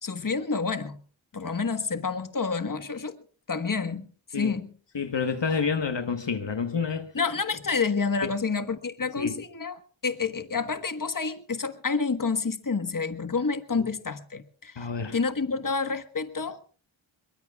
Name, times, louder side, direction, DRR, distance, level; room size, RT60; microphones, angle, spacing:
voice 1, 0.0-1.0 1.3-3.2 3.5-4.7 7.1-16.6, left 4 dB, 40° left, 1.4 m, -29 dB
voice 2, 4.9-7.1 8.2-8.3 9.2-9.4 14.8-15.2, left 5 dB, 60° left, 1.3 m, -28 dB
23.0 x 22.0 x 2.4 m
wide cardioid pair, 55°, 48 cm